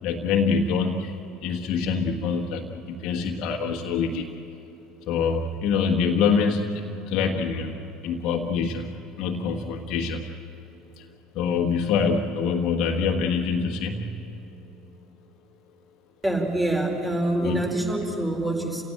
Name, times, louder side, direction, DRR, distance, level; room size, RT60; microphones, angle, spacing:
voice 1, 0.0-1.2 1.4-4.3 5.1-7.8 8.0-10.2 11.0-11.1 11.3-14.1 17.4-17.7, left 5 dB, 50° left, 1 dB, 1.5 m, -25 dB
voice 2, 16.2-18.8, right 1 dB, 15° right, 1 dB, 4.7 m, -25 dB
28.5 x 17.0 x 9.1 m, 2.9 s
figure-of-eight pair, 65°, 0 cm